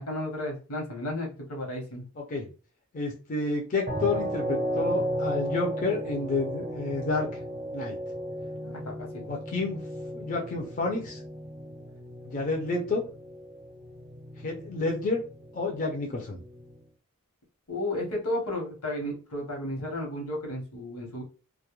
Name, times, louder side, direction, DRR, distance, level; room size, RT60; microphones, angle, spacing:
voice 1, 0.0-2.0 8.5-9.3 17.7-21.2, left 1 dB, 85° left, 0 dB, 1.0 m, -33 dB
voice 2, 2.9-7.3 7.7-8.0 9.3-9.8 10.1-11.2 12.3-13.0 14.4-15.2 15.5-16.4, left 3 dB, 35° left, 0 dB, 0.4 m, -30 dB
sound 1, 3.9-16.9, right 1 dB, 30° right, 0.5 m, -35 dB
2.2 x 2.1 x 2.9 m, 0.36 s
head